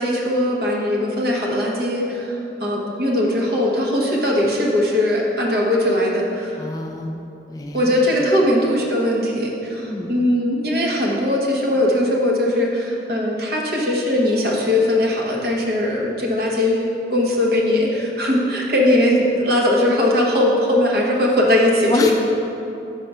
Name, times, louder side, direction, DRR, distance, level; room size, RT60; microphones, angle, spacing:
voice 1, 0.0-6.7 7.7-16.8 17.1-22.1, left 1 dB, 55° right, -3 dB, 1.0 m, -20 dB
voice 2, 6.6-7.2 7.5-8.0 9.8-10.1 21.9-22.1, left 2 dB, 20° left, 2 dB, 0.3 m, -27 dB
5.8 x 4.5 x 5.4 m, 2.8 s
head